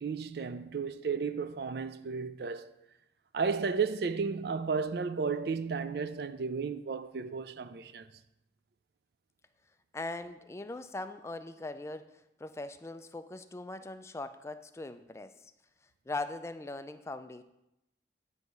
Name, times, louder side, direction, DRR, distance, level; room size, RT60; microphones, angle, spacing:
voice 1, 0.0-2.7 3.3-8.1, right 5 dB, 60° right, 0.4 m, -33 dB
voice 2, 9.9-15.5 16.1-17.4, left 2 dB, 15° left, 0.3 m, -40 dB
9.3 x 3.5 x 5.3 m
head